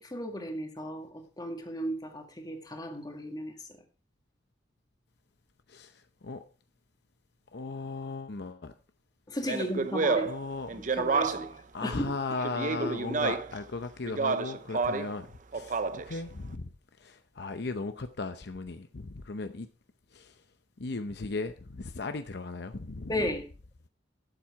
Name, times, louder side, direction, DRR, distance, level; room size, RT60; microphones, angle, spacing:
voice 1, 0.0-3.5 9.3-10.3 11.0-12.1 12.8-12.9 23.1-23.4, equal, 20° left, 1.8 m, -35 dB
voice 2, 5.7-6.4 7.5-8.7 9.5-9.6 10.2-10.8 11.7-15.3 15.5-16.7 17.0-19.7 20.1-20.4 20.8-23.3, left 3 dB, 65° left, 0.7 m, -37 dB
Speech, 9.4-11.6 12.4-13.6 14.0-15.2 15.5-16.2, right 4 dB, 45° right, 0.7 m, -30 dB
12.0 x 7.5 x 4.8 m
head